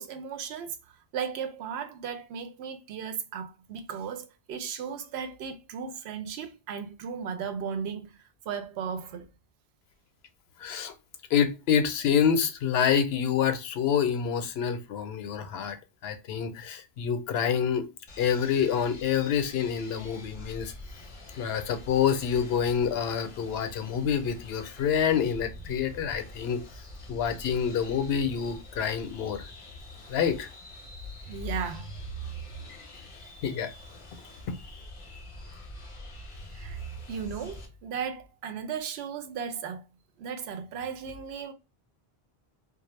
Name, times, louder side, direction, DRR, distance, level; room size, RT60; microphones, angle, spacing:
voice 1, 0.0-9.3 31.3-32.0 36.5-36.8 37.1-39.8 40.2-41.5, right 6 dB, 85° right, 0.8 m, -36 dB
voice 2, 10.6-10.9 11.3-15.8 16.0-17.9 18.2-20.7 21.4-26.6 27.1-29.4 30.1-30.5 33.4-33.7, left 8 dB, 80° left, 0.8 m, -27 dB
sound 1, 18.1-37.7, left 1 dB, 40° left, 0.5 m, -46 dB
2.2 x 2.0 x 3.0 m
omnidirectional pair, 1.0 m